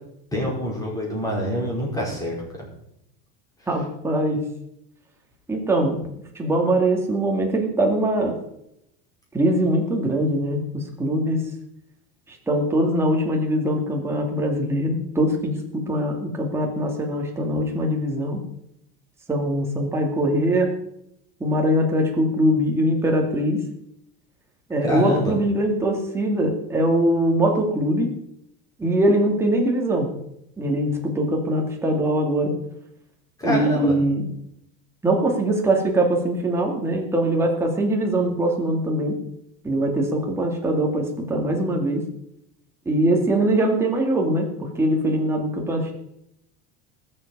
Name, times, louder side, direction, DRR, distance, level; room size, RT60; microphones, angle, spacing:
voice 1, 0.3-2.7 24.8-25.4 33.4-33.9, equal, 10° left, -3 dB, 5.0 m, -26 dB
voice 2, 3.7-4.4 5.5-6.0 6.3-8.4 9.3-11.4 12.5-18.4 19.3-20.7 21.4-23.6 24.7-28.1 28.8-30.1 30.6-32.5 33.4-34.3 35.0-39.2 39.6-42.0 42.9-45.9, right 1 dB, 10° right, 0 dB, 2.4 m, -22 dB
19.5 x 7.8 x 5.5 m, 0.78 s
cardioid pair, 160°, 29 cm